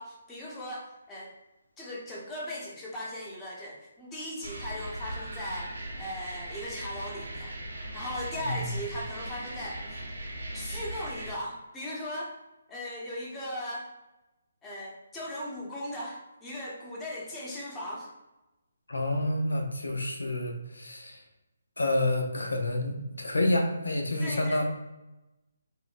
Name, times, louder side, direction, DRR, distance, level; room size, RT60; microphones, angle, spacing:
voice 1, 0.0-1.3 1.8-7.6 7.9-9.8 10.5-12.4 12.7-13.9 14.6-18.1 24.2-24.6, left 1 dB, 15° left, -4 dB, 0.7 m, -38 dB
sound 1, 4.4-11.3, right 1 dB, 90° right, 0.9 m, -39 dB
voice 2, 8.4-8.8 18.9-21.2 21.8-24.6, left 1 dB, 90° left, 3 dB, 0.5 m, -29 dB
3.6 x 2.0 x 2.4 m, 0.99 s
figure-of-eight pair, 150°, 0 cm